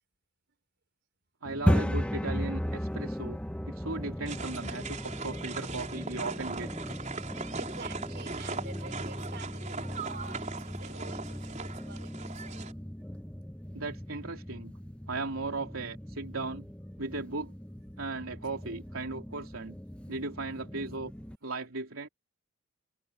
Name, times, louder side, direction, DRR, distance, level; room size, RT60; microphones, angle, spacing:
sound 1, 1.4-21.3, equal, 5° left, 1.1 m, -36 dB
voice 1, 1.4-3.4 3.7-6.7 9.9-10.0 13.7-14.7 15.1-16.7 17.0-17.5 18.0-19.8 20.1-21.1 21.4-22.1, right 3 dB, 75° right, 3.3 m, -37 dB
sound 2, 4.3-12.7, right 4 dB, 35° right, 4.5 m, -40 dB
voice 2, 7.5-12.6 20.7-20.8, right 4 dB, 55° right, 5.9 m, -49 dB
head